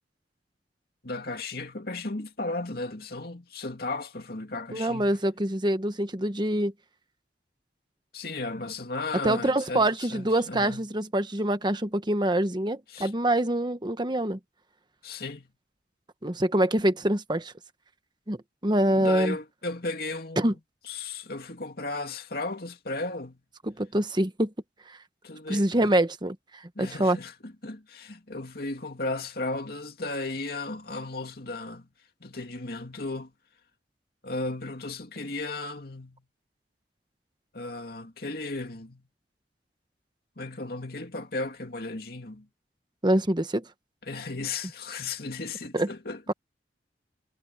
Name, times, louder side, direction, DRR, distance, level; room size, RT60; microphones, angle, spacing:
voice 1, 1.0-5.2 8.1-10.9 12.9-13.1 15.0-15.5 18.9-20.6 20.8-23.4 25.2-25.9 26.8-31.9 32.2-33.3 34.2-36.2 37.5-39.0 40.4-42.5 44.0-46.3, left 2 dB, 60° left, 2.5 m, -35 dB
voice 2, 4.7-6.7 9.2-14.4 16.2-17.5 18.3-18.4 18.6-19.4 20.4-20.5 23.7-24.5 25.5-27.2 43.0-43.6 45.7-45.9, right 1 dB, 25° right, 1.2 m, -25 dB
head